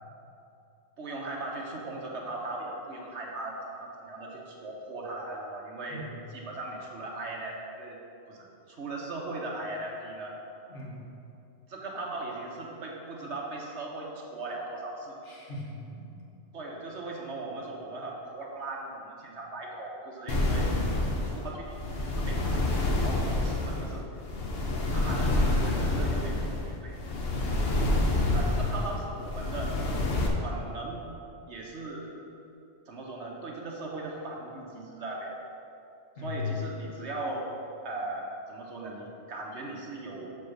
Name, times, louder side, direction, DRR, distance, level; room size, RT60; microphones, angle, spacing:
voice 1, 1.0-8.0 8.3-10.4 11.7-15.2 16.5-20.8 21.2-21.8 22.1-22.6 23.0-24.1 24.9-27.0 28.3-29.8 30.4-31.0 31.5-32.1 32.9-35.3 36.2-37.5 37.8-40.4, right 2 dB, 70° right, -1 dB, 1.4 m, -38 dB
voice 2, 5.9-6.2 10.7-11.0 15.2-16.3 20.4-21.1 25.2-26.0 28.1-28.8 36.2-36.6, left 4 dB, 75° left, -5 dB, 2.0 m, -36 dB
brown noise zigzag, 20.3-30.3, left 2 dB, 55° left, 1.1 m, -28 dB
6.9 x 5.1 x 6.5 m, 2.7 s
omnidirectional pair, 1.2 m